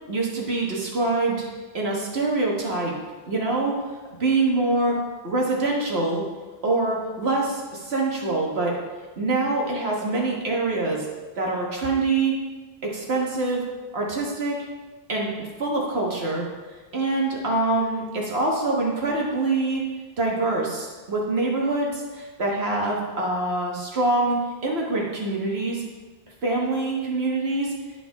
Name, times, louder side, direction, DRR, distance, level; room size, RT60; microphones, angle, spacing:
voice 1, 0.1-1.4 1.7-2.9 3.3-3.7 4.2-5.0 5.2-6.2 6.6-8.8 9.2-11.1 11.4-12.3 12.8-13.6 13.9-14.6 15.1-16.5 16.9-19.8 20.2-24.4 24.6-25.8 26.4-27.7, right 2 dB, 80° right, -2 dB, 1.6 m, -25 dB
11.0 x 5.0 x 3.4 m, 1.3 s
omnidirectional pair, 1.1 m